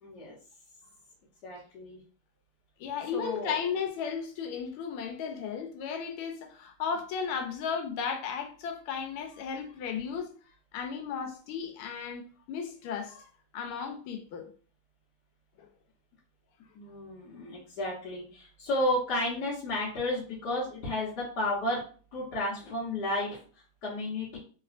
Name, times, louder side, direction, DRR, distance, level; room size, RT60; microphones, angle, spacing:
voice 1, 0.0-0.3 1.4-2.0 3.1-3.6 16.7-21.8 22.1-23.4 23.8-24.4, left 1 dB, 60° left, 1.4 m, -32 dB
voice 2, 2.8-10.3 10.7-13.3 13.5-14.5, left 6 dB, 90° left, 1.5 m, -35 dB
3.2 x 3.0 x 2.4 m
omnidirectional pair, 2.3 m